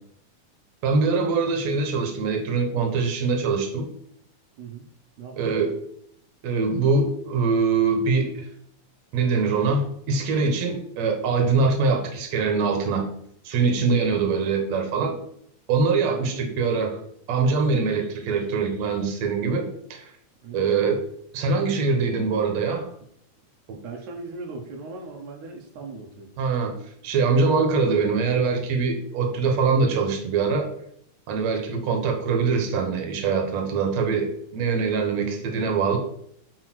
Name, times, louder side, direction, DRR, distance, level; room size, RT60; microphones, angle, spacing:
voice 1, 0.8-3.9 5.4-5.7 6.4-8.5 9.1-13.0 13.4-15.1 15.7-17.0 17.3-20.1 20.5-21.0 21.3-22.9 23.7-23.8 26.4-26.7 27.0-30.7 31.3-36.0, right 4 dB, 65° right, 3 dB, 2.5 m, -23 dB
voice 2, 5.2-5.7 14.1-14.3 16.1-16.6 20.4-20.7 23.8-26.3, right 4 dB, 80° right, 1 dB, 2.4 m, -39 dB
6.4 x 4.9 x 6.2 m, 0.68 s
omnidirectional pair, 3.5 m